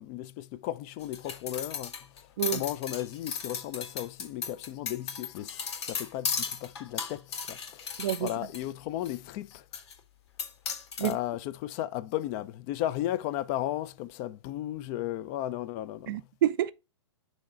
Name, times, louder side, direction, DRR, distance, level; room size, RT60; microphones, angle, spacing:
voice 1, 0.0-2.2 2.5-9.6 11.0-16.2, left 13 dB, 30° left, 0.5 m, -35 dB
sound 1, 1.0-8.6 9.0-9.1 9.7-9.9 10.4-11.1, left 6 dB, 60° left, 2.2 m, -35 dB
voice 2, 8.0-8.3 11.0-11.2 16.1-16.7, right 12 dB, 45° right, 0.5 m, -28 dB
6.3 x 3.1 x 5.0 m
figure-of-eight pair, 115°, 16 cm